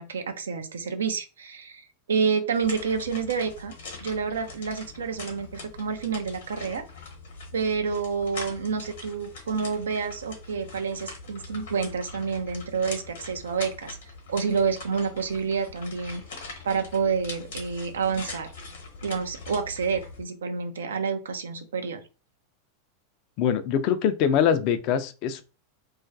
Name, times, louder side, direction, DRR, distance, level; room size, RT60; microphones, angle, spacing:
voice 1, 0.0-3.7 4.0-6.8 7.5-14.0 14.3-18.5 19.0-22.0, right 5 dB, 75° right, 0.4 m, -29 dB
sound 1, 2.5-20.2, left 3 dB, 65° left, 0.9 m, -42 dB
voice 2, 23.4-25.4, left 8 dB, 50° left, 0.4 m, -23 dB
2.3 x 2.2 x 2.5 m
figure-of-eight pair, 85°, 0 cm